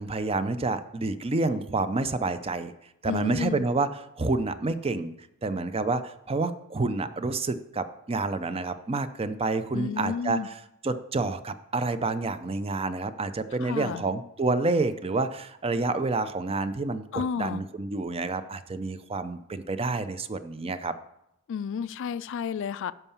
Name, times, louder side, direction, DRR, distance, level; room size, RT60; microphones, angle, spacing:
voice 1, 0.0-2.7 3.0-3.9 4.2-5.1 5.4-10.6 10.8-20.9, right 3 dB, 25° right, 12 dB, 0.5 m, -28 dB
voice 2, 3.1-3.7 9.7-10.5 13.6-14.0 17.1-17.6 21.5-22.9, left 7 dB, 60° left, 16 dB, 0.3 m, -31 dB
11.0 x 4.6 x 7.0 m, 0.82 s
head